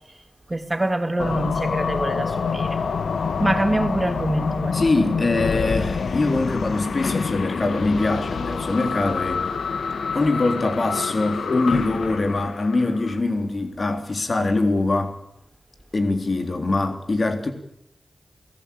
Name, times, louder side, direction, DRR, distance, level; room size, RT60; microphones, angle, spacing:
voice 1, 0.5-2.8 3.4-4.8, right 1 dB, 25° right, 2.3 m, -25 dB
sound 1, 1.2-13.2, left 5 dB, 85° left, 1.4 m, -27 dB
voice 2, 4.7-9.5 10.1-15.1 15.9-17.5, left 2 dB, 50° left, 3.7 m, -23 dB
28.5 x 17.5 x 8.7 m
wide cardioid pair, 70°, 0 cm